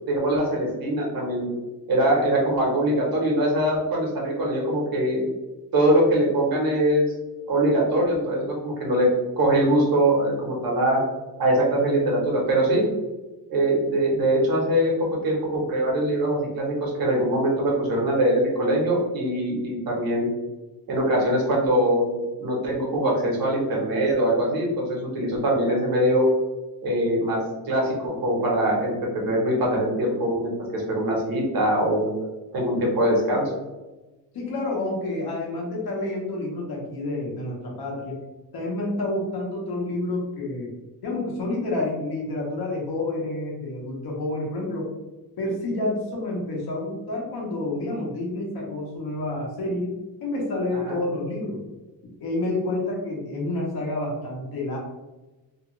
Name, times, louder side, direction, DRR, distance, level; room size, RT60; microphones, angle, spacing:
voice 1, 0.1-1.5 1.9-5.2 5.7-7.0 7.5-9.1 9.4-11.0 11.4-12.9 13.5-20.3 20.9-26.3 26.8-32.1 32.5-33.5 50.7-51.0, right 1 dB, 60° right, -2 dB, 1.1 m, -22 dB
voice 2, 34.3-38.2 38.5-40.7 41.0-44.9 45.4-49.9 50.2-51.6 52.2-54.8, left 2 dB, 65° left, -2 dB, 1.1 m, -29 dB
2.9 x 2.4 x 3.0 m, 1.1 s
cardioid pair, 150°, 41 cm